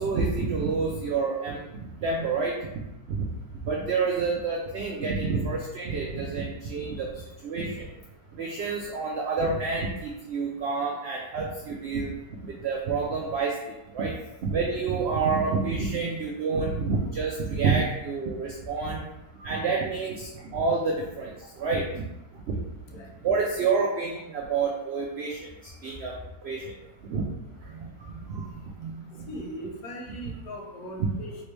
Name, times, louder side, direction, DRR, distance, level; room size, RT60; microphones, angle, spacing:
voice 1, 0.0-1.6 2.0-2.5 3.1-3.3 3.6-7.1 7.4-7.9 8.4-12.1 12.6-13.6 13.9-14.1 14.4-19.0 19.4-21.3 21.6-22.0 22.5-22.6 23.2-25.5 25.8-26.1 26.4-26.7 27.1-27.2 27.7-27.9 28.3-28.4 28.8-29.3, right 4 dB, 75° right, -1 dB, 0.5 m, -28 dB
voice 2, 29.3-31.4, equal, 70° left, 1 dB, 1.2 m, -39 dB
3.4 x 3.0 x 3.3 m, 0.91 s
omnidirectional pair, 1.7 m